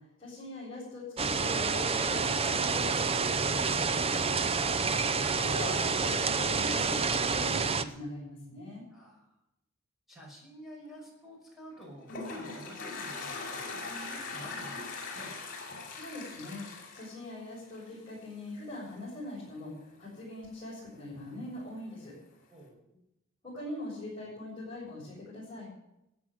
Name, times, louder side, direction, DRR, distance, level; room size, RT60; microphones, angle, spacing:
voice 1, 0.2-3.8 5.4-8.8 15.9-22.1 23.4-25.7, left 1 dB, 25° left, -9 dB, 7.1 m, -42 dB
sound 1, 1.2-7.8, right 4 dB, 30° right, 0.7 m, -28 dB
voice 2, 8.9-9.3 10.1-15.3 22.5-23.0, equal, ahead, -3 dB, 5.9 m, -50 dB
Toilet flush, 11.7-18.1, left 3 dB, 45° left, 4.8 m, -40 dB
14.5 x 9.1 x 8.8 m, 0.86 s
head